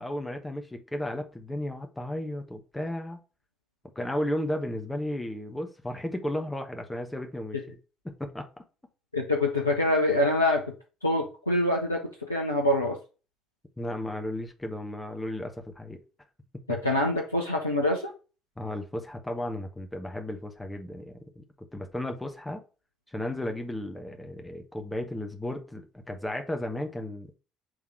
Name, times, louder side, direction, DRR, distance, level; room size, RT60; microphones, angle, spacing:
voice 1, 0.0-3.2 3.9-7.8 8.0-8.5 13.8-16.0 16.7-16.8 18.6-22.6 23.1-27.3, left 1 dB, 10° left, 5 dB, 1.1 m, -34 dB
voice 2, 9.1-10.6 11.0-13.0 16.7-18.1, left 1 dB, 85° left, -1 dB, 0.6 m, -25 dB
6.4 x 3.6 x 4.6 m, 0.33 s
figure-of-eight pair, 50°, 0 cm